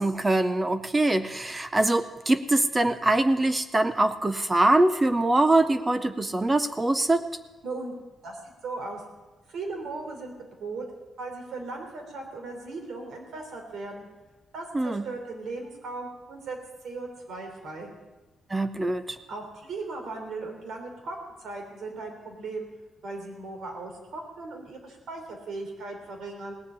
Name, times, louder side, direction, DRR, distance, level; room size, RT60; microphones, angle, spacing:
voice 1, 0.0-7.2 14.7-15.0 18.5-19.2, right 2 dB, 15° right, 11 dB, 0.5 m, -23 dB
voice 2, 7.6-7.9 8.2-9.0 9.5-10.3 10.6-10.8 11.2-14.1 14.5-16.6 16.8-17.9 19.3-22.7 23.0-26.5, right 3 dB, 70° right, 3 dB, 3.5 m, -37 dB
18.0 x 7.7 x 8.4 m, 1.2 s
wide cardioid pair, 165°, 0 cm